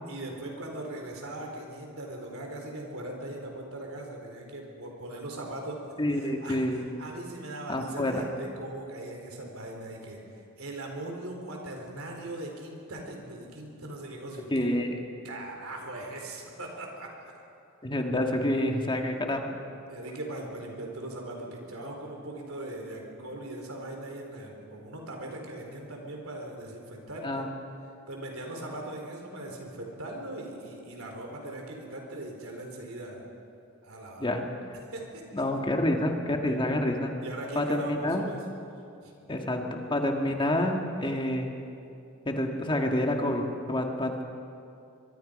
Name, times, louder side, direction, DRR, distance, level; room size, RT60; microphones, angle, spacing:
voice 1, 0.1-5.8 6.1-10.2 10.6-14.5 15.2-17.4 19.9-27.5 28.1-33.2 33.8-34.3 34.9-35.2 35.6-35.7 36.4-36.6 37.2-38.4 39.0-39.3, right 1 dB, 75° right, 1 dB, 4.2 m, -40 dB
voice 2, 6.0-6.8 7.7-8.2 14.5-15.0 17.8-19.5 27.2-27.5 34.2-34.4 35.3-37.1 37.5-38.2 39.3-41.5 42.2-44.2, left 1 dB, 25° left, 3 dB, 1.7 m, -28 dB
23.5 x 23.5 x 5.3 m, 2.6 s
head